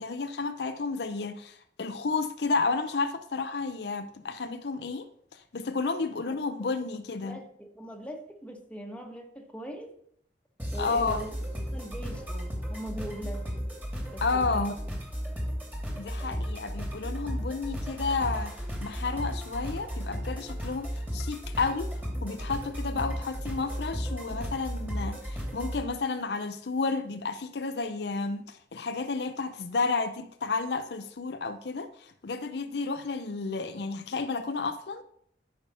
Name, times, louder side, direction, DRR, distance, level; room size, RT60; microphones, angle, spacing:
voice 1, 0.0-7.4 10.8-11.3 14.2-14.8 16.0-21.9 22.2-35.0, left 4 dB, 70° left, 0.6 m, -31 dB
voice 2, 7.2-9.9 10.7-11.4 11.7-13.6 14.0-15.0, right 1 dB, 5° left, 1.5 m, -41 dB
sound 1, 10.6-25.8, equal, 10° right, 2.6 m, -34 dB
12.5 x 5.8 x 5.6 m
head